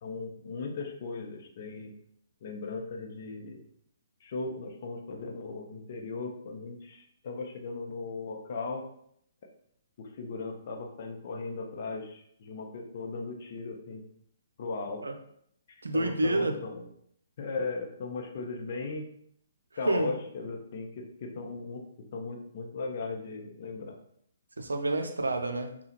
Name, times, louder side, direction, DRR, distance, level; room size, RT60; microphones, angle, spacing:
voice 1, 0.0-1.9 2.4-3.6 4.2-8.8 10.0-14.0 14.6-15.0 15.7-16.9 17.4-19.0 19.8-21.8 22.1-24.0, left 3 dB, 45° left, 2 dB, 0.7 m, -37 dB
voice 2, 15.8-16.6 19.9-20.1 24.6-25.7, right 2 dB, 75° right, 5 dB, 0.5 m, -28 dB
5.5 x 2.3 x 2.9 m, 0.69 s
figure-of-eight pair, 130°, 0 cm